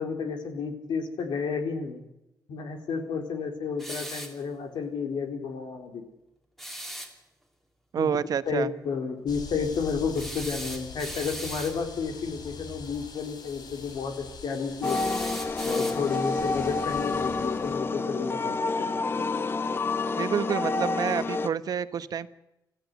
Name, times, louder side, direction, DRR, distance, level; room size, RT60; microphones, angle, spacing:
voice 1, 0.0-2.0 2.5-6.0 8.0-8.1 8.5-15.0 15.6-19.0, left 5 dB, 80° left, 6 dB, 4.2 m, -31 dB
sound 1, 3.8-4.4 6.6-7.1 10.1-11.8 14.8-16.3, right 1 dB, 5° left, 2.9 m, -38 dB
voice 2, 7.9-8.7 20.2-22.3, right 8 dB, 60° right, 13 dB, 1.1 m, -28 dB
sound 2, 9.3-17.8, left 4 dB, 65° left, 3.9 m, -44 dB
sound 3, 14.8-21.5, left 3 dB, 30° left, 0.9 m, -28 dB
26.0 x 15.5 x 8.0 m, 0.89 s
wide cardioid pair, 160°, 7 cm